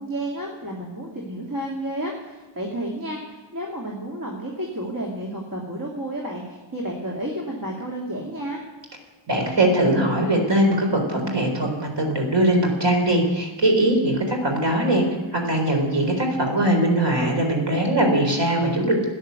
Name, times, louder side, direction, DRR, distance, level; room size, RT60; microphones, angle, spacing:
voice 1, 0.0-8.6, right 1 dB, 45° right, -2 dB, 3.0 m, -31 dB
voice 2, 9.3-15.0 15.3-19.1, right 1 dB, 65° right, 2 dB, 4.3 m, -21 dB
13.5 x 10.0 x 8.2 m, 1.3 s
wide cardioid pair, 85°, 46 cm